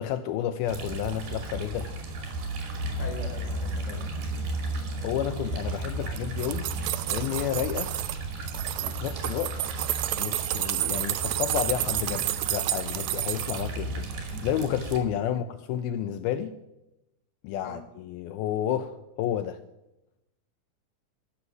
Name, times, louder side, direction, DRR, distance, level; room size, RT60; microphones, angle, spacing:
voice 1, 0.0-1.9 5.0-6.7 7.1-7.9 8.8-9.6 10.2-16.5 17.4-19.6, left 10 dB, 80° left, 2.3 m, -31 dB
sound 1, 0.7-15.0, right 2 dB, 70° right, 4.5 m, -34 dB
voice 2, 3.0-4.1 15.2-15.5 17.6-17.8, left 2 dB, 40° left, 1.1 m, -41 dB
sound 2, 6.0-8.2 8.5-13.7 14.1-14.7 14.9-15.0, right 15 dB, 90° right, 2.8 m, -30 dB
15.0 x 6.4 x 7.9 m
omnidirectional pair, 4.8 m